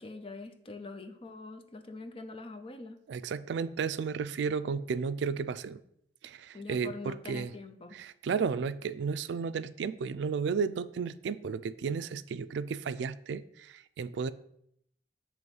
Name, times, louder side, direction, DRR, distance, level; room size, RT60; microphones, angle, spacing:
voice 1, 0.0-3.0 6.5-8.0, left 3 dB, 35° left, 7 dB, 0.6 m, -44 dB
voice 2, 3.1-5.8 6.2-7.5 7.9-14.3, right 5 dB, 80° right, 14 dB, 0.3 m, -33 dB
7.8 x 3.1 x 5.3 m, 0.72 s
head